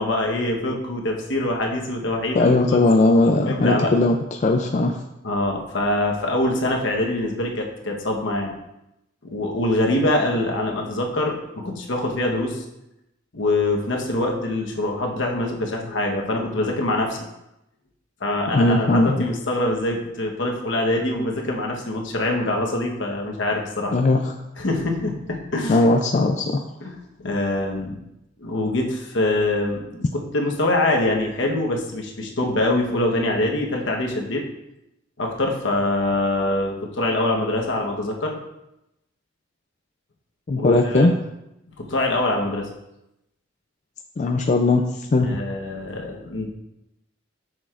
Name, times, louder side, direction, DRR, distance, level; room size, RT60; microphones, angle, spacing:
voice 1, 0.0-2.8 3.4-3.9 5.2-8.5 9.2-12.6 13.3-17.2 18.2-23.9 24.6-25.9 26.8-27.9 28.4-34.4 35.2-38.3 40.5-41.1 41.8-42.7 45.2-46.5, left 1 dB, 70° left, 0 dB, 1.1 m, -24 dB
voice 2, 2.3-5.0 18.5-19.3 23.9-24.3 25.7-26.6 40.5-41.1 44.2-44.8 45.1-45.3, left 2 dB, 40° left, 3 dB, 0.4 m, -18 dB
7.5 x 6.2 x 2.5 m, 0.89 s
head